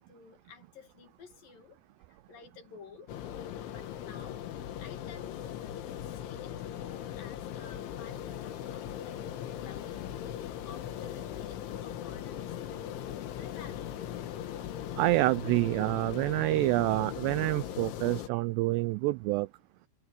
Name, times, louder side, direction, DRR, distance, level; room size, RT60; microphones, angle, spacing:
voice 1, 0.0-1.8 2.1-3.2 3.7-4.4 4.8-10.0 10.6-12.9 13.3-14.0, left 6 dB, 55° left, 3.7 m, -53 dB
sound 1, 3.1-18.3, left 11 dB, 80° left, 4.0 m, -39 dB
voice 2, 15.0-19.5, right 20 dB, 85° right, 2.4 m, -27 dB
omnidirectional pair, 5.4 m